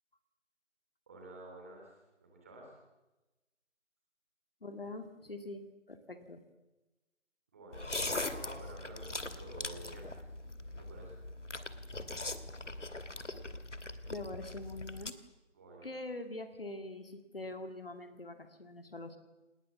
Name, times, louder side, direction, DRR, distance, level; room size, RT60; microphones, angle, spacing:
voice 1, 1.1-1.9 2.2-2.8 7.5-10.4 10.7-11.2 15.5-15.9, right 1 dB, 10° right, 0 dB, 3.2 m, -51 dB
voice 2, 4.6-6.4 14.1-15.1 15.8-19.2, left 2 dB, 50° left, 8 dB, 2.3 m, -44 dB
Soup slurp, 7.7-15.1, left 2 dB, 70° left, 2.4 m, -41 dB
28.5 x 20.0 x 7.2 m, 1.1 s
figure-of-eight pair, 170°, 38 cm